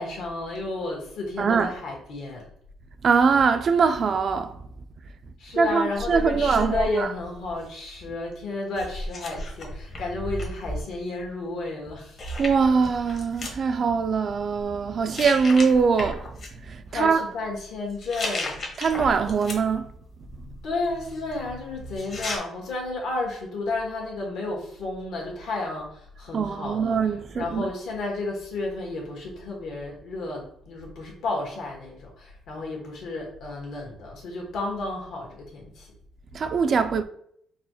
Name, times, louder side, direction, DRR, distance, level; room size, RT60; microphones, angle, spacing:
voice 1, 0.0-2.5 5.4-12.2 16.9-18.7 20.6-27.0 27.3-35.9, left 2 dB, 75° left, 1.5 m, -32 dB
voice 2, 1.4-1.7 3.0-4.6 5.6-7.1 12.4-16.2 16.7-17.4 18.8-19.9 26.3-27.7 36.3-37.0, right 5 dB, 45° right, 0.3 m, -22 dB
sound 1, 5.9-7.8 8.7-10.8 11.8-11.9 12.2-13.6 14.3-14.7 15.1-16.5 17.9-19.8 20.2-22.4, left 1 dB, 45° left, 1.0 m, -35 dB
4.0 x 2.9 x 2.9 m
cardioid pair, 120°, 0 cm